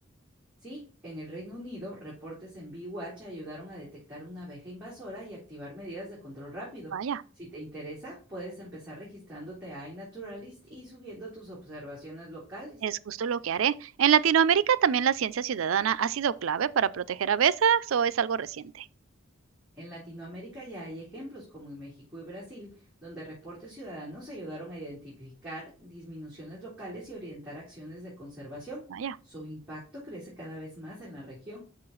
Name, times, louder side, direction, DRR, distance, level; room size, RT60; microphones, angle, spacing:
voice 1, 0.6-12.8 19.7-31.6, equal, 5° right, 3.5 m, -42 dB
voice 2, 12.8-18.9 29.0-29.1, right 8 dB, 80° right, 0.4 m, -25 dB
6.2 x 5.8 x 3.8 m
head